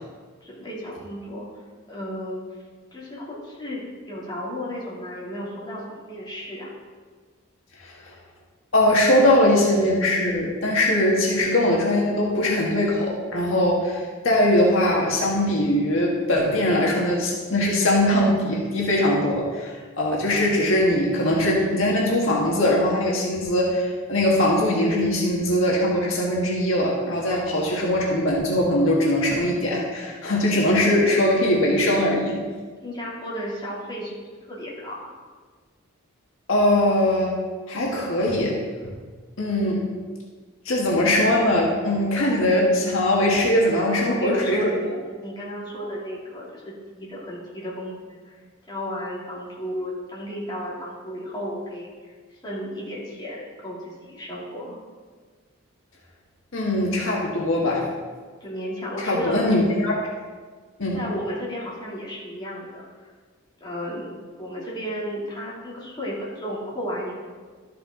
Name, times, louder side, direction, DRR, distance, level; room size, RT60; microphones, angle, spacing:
voice 1, 0.4-1.5 1.9-2.4 2.9-6.7 32.8-34.2 34.5-35.1 44.0-48.3 48.7-51.9 52.3-54.8 58.4-59.4 60.9-63.1 63.6-64.1 64.4-67.1, equal, 20° left, -7 dB, 2.8 m, -33 dB
voice 2, 8.7-19.7 20.0-32.4 36.5-37.3 37.7-38.6 39.4-39.8 40.6-44.7 56.5-57.8 59.0-59.9 60.8-61.0, left 1 dB, 70° left, -3 dB, 1.6 m, -21 dB
12.5 x 6.9 x 3.8 m, 1.5 s
head